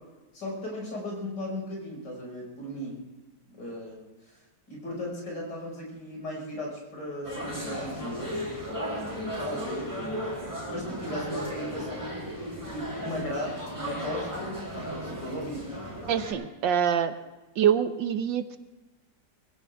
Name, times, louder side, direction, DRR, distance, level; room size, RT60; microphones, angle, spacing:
voice 1, 0.3-3.0 3.5-4.0 4.2-4.4 4.7-8.4 8.7-10.0 10.7-12.3 12.7-15.8, left 1 dB, 70° left, -2 dB, 6.1 m, -37 dB
sound 1, 7.2-16.3, equal, 10° right, 6.0 m, -35 dB
voice 2, 16.1-17.1 17.6-18.6, right 8 dB, 90° right, 10 dB, 1.6 m, -25 dB
21.5 x 16.5 x 3.5 m, 1.1 s
omnidirectional pair, 1.9 m